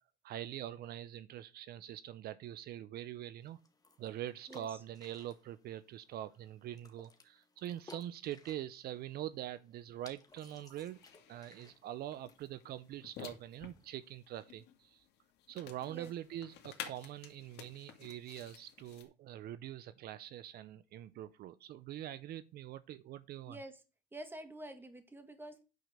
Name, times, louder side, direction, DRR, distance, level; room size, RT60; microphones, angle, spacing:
voice 1, 0.2-3.6 4.0-11.0 11.3-15.0 15.5-23.6, right 12 dB, 70° right, 0.6 m, -44 dB
sound 1, 3.4-13.9, left 3 dB, 20° left, 1.7 m, -62 dB
voice 2, 4.5-4.8 15.9-16.1 23.5-23.7 24.1-25.6, right 1 dB, 10° right, 2.1 m, -48 dB
sound 2, 10.3-19.0, left 10 dB, 85° left, 2.0 m, -53 dB
9.4 x 5.0 x 6.6 m
cardioid pair, 110°, 17 cm